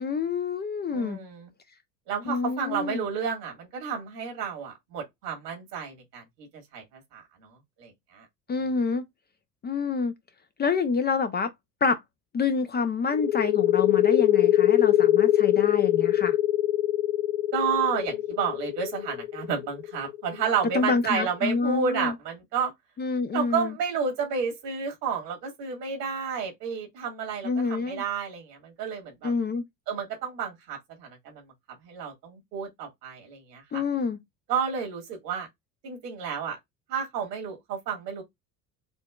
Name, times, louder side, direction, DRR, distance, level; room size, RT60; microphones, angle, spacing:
voice 1, 0.0-1.2 2.3-3.1 8.5-9.0 9.6-10.1 10.6-11.5 11.8-12.0 12.3-16.4 20.7-22.1 23.0-23.7 27.4-28.0 29.2-29.6 33.7-34.2, left 5 dB, 20° left, 0.5 m, -27 dB
voice 2, 0.9-1.5 2.1-6.2 6.7-7.2 7.8-8.3 17.5-22.7 23.3-29.3 29.9-31.4 31.8-33.8 34.5-35.5 35.8-36.6 36.9-38.2, right 6 dB, 80° right, 1.7 m, -31 dB
sound 1, 13.1-20.5, left 13 dB, 80° left, 0.7 m, -23 dB
4.4 x 2.7 x 2.3 m
hypercardioid pair, 65°, 48 cm